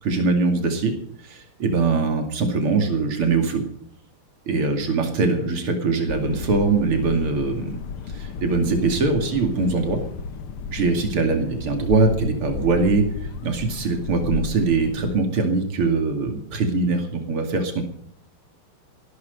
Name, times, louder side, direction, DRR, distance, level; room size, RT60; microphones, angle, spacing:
voice 1, 0.0-0.9 1.2-3.6 4.5-7.7 8.1-10.0 10.7-13.1 13.4-17.8, right 3 dB, 85° right, 5 dB, 3.3 m, -22 dB
sound 1, 6.1-15.2, left 6 dB, 80° left, 2.1 m, -33 dB
16.5 x 13.0 x 5.4 m, 0.64 s
omnidirectional pair, 2.4 m